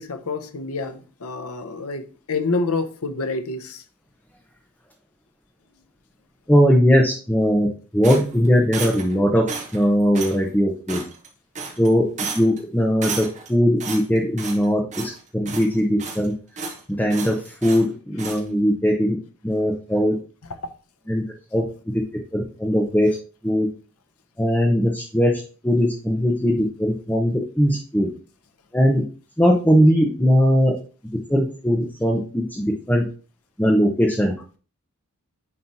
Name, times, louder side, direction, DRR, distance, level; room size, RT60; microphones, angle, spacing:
voice 1, 0.0-2.0 2.3-3.8, left 3 dB, 80° left, 0.8 m, -27 dB
voice 2, 6.5-11.0 11.8-12.1 12.3-16.4 16.9-19.2 19.4-20.2 21.1-21.2 21.5-21.6 21.9-22.0 22.3-23.1 23.4-23.7 24.4-28.1 28.7-29.0 29.4-30.8 31.1-33.1 33.6-34.4, equal, 10° left, 0.9 m, -20 dB
sound 1, 8.0-9.1 9.5-9.8 10.1-10.4 10.9-11.3 11.5-11.9 12.2-12.6 13.0-13.5 13.8-14.7 14.9-15.2 15.5-16.3 16.6-16.8 17.1-17.9 18.2-18.4, right 4 dB, 30° right, 1.1 m, -32 dB
9.6 x 3.2 x 4.2 m
head